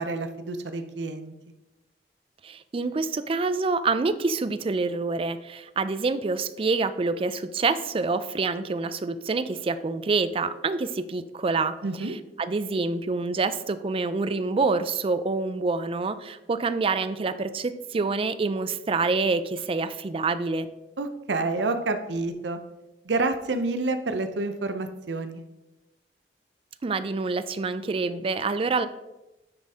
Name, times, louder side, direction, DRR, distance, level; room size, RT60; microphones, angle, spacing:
voice 1, 0.0-1.3 11.8-12.2 21.0-22.6 23.0-25.4, right 3 dB, 90° right, 8 dB, 0.7 m, -28 dB
voice 2, 2.4-11.7 12.0-12.1 12.4-20.7 26.8-28.9, right 3 dB, 30° right, 13 dB, 0.4 m, -27 dB
9.7 x 4.2 x 3.6 m, 1.0 s
head